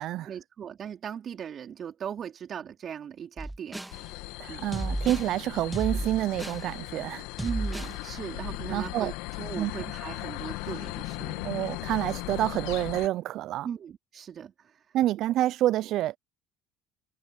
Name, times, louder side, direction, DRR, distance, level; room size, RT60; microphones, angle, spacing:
voice 1, 0.2-4.7 7.4-11.8 13.6-14.8, right 8 dB, 50° right, 3.4 m, -39 dB
sound 1, 3.4-4.0 4.7-5.3 5.7-6.6 7.4-8.0, right 1 dB, 10° right, 2.0 m, -33 dB
sound 2, 3.9-13.1, left 22 dB, 75° left, 1.8 m, -38 dB
voice 2, 4.4-7.2 8.7-9.1 9.6-9.7 11.4-13.7 14.9-16.2, right 14 dB, 65° right, 0.7 m, -28 dB
hypercardioid pair, 65°, 0 cm